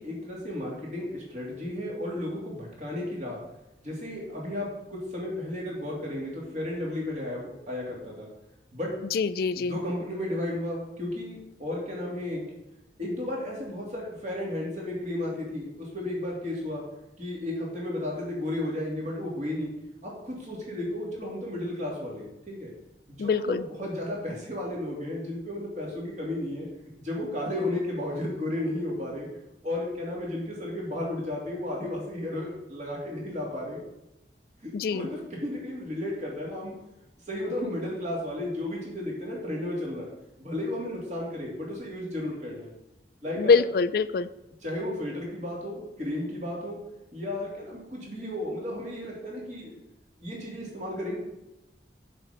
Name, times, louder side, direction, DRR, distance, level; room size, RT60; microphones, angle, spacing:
voice 1, 0.0-3.4 3.8-8.3 8.7-8.9 9.6-12.4 13.0-16.8 17.2-19.7 20.0-22.7 23.1-26.7 27.0-29.3 29.6-33.8 34.6-36.7 37.3-40.1 40.4-42.7 43.2-43.6 44.6-46.8 47.1-49.8 50.2-51.2, left 1 dB, 40° right, -3 dB, 2.8 m, -33 dB
voice 2, 9.1-9.7 23.2-23.6 34.7-35.1 43.4-44.3, left 5 dB, 55° left, 15 dB, 0.3 m, -24 dB
7.4 x 5.3 x 7.1 m, 0.92 s
head